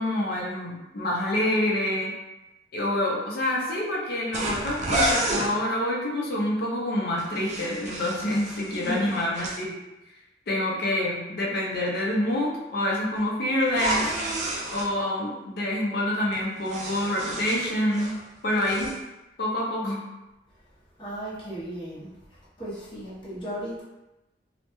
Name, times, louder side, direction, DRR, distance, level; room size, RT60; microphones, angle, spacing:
voice 1, 0.0-2.1 2.7-9.7 10.5-14.1 14.7-18.1 18.4-18.9 19.4-20.0, left 1 dB, 60° left, -3 dB, 0.5 m, -27 dB
sound 1, 4.3-5.5 7.2-9.6 13.7-14.9 16.3-18.2 18.5-19.0, right 1 dB, 40° right, 0.4 m, -30 dB
voice 2, 21.0-22.1 22.6-23.8, equal, 30° left, -9 dB, 0.7 m, -35 dB
2.2 x 2.0 x 2.9 m, 0.99 s
head